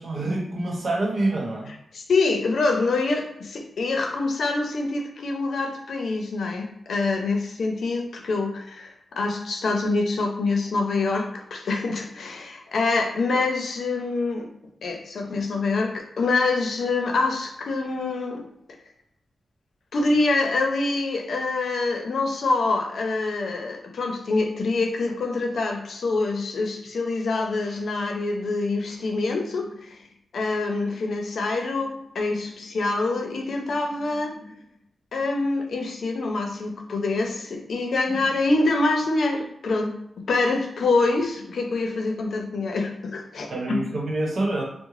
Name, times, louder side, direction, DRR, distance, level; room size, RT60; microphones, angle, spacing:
voice 1, 0.0-1.7 43.5-44.6, right 2 dB, 55° right, -1 dB, 0.9 m, -26 dB
voice 2, 1.9-8.9 9.1-14.5 14.8-18.4 19.9-30.0 30.3-34.4 35.1-39.9 40.3-43.8, left 3 dB, 75° left, 3 dB, 0.6 m, -25 dB
3.7 x 2.1 x 3.2 m, 0.76 s
wide cardioid pair, 125°, 0 cm